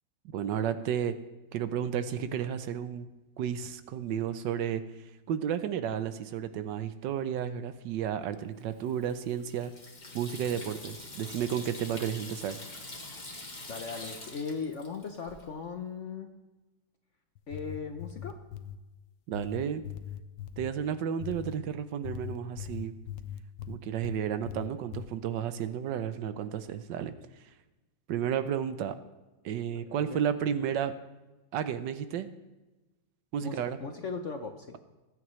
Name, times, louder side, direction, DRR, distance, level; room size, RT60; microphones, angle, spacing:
voice 1, 0.3-1.1 1.5-3.1 3.4-4.8 5.3-9.7 10.1-12.6 19.3-19.8 20.6-22.9 23.7-27.1 28.1-28.9 29.4-30.9 31.5-32.3 33.3-33.8, right 9 dB, 75° right, 11 dB, 1.3 m, -32 dB
Water tap faucet / Sink (filling or washing), 8.7-15.5, left 2 dB, 25° left, 1.5 m, -45 dB
voice 2, 13.7-16.3 17.5-18.4 30.0-30.2 33.4-34.7, left 5 dB, 55° left, 5 dB, 0.8 m, -38 dB
sound 1, 17.4-18.8 19.3-20.7 21.2-21.6 22.0-24.2 24.5-25.1, left 10 dB, 80° left, 1.3 m, -40 dB
19.5 x 9.5 x 3.2 m, 1.1 s
omnidirectional pair, 2.0 m